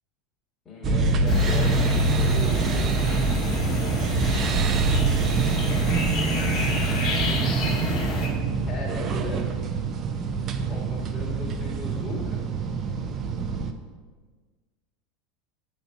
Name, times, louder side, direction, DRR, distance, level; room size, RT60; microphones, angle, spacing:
voice 1, 0.6-3.3 5.1-6.2 8.5-9.7 10.7-12.4, left 2 dB, 25° left, -7 dB, 2.3 m, -38 dB
sound 1, 0.8-13.7, right 4 dB, 35° right, 0.6 m, -25 dB
sound 2, 1.3-8.3, left 3 dB, 45° left, 2.1 m, -30 dB
8.0 x 4.2 x 6.4 m, 1.5 s
figure-of-eight pair, 80°, 0 cm